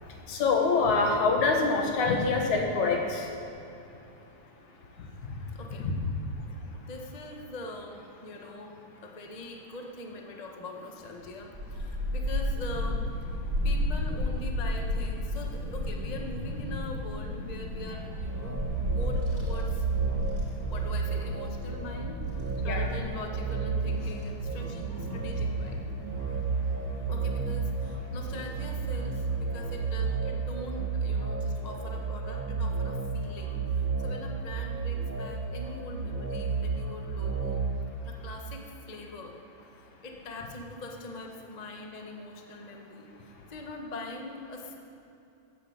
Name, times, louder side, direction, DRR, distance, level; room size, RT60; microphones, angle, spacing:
voice 1, 0.3-3.3 5.8-5.9 22.7-22.9, left 4 dB, 75° left, 2 dB, 2.9 m, -25 dB
voice 2, 5.5-5.9 6.7-13.0 13.6-18.6 18.9-19.8 20.7-25.8 27.1-37.6 38.0-39.3 40.0-44.7, left 2 dB, 30° left, 1 dB, 0.7 m, -42 dB
Child speech kid speaking / Wind, 11.5-29.9, left 1 dB, 25° right, 3.4 m, -34 dB
sound 1, 18.2-37.8, right 5 dB, 50° right, 2.0 m, -32 dB
14.5 x 9.2 x 8.1 m, 2.8 s
omnidirectional pair, 3.4 m